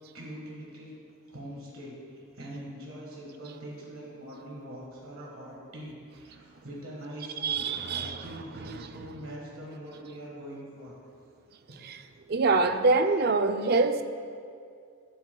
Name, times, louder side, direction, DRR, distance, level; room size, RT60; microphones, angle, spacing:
voice 1, 0.1-0.9 1.3-10.9 11.7-11.8, right 1 dB, 70° right, -4 dB, 1.4 m, -43 dB
voice 2, 7.4-8.2 11.8-12.0 12.3-14.0, right 3 dB, 45° right, 9 dB, 0.3 m, -24 dB
12.0 x 7.6 x 2.2 m, 2.3 s
head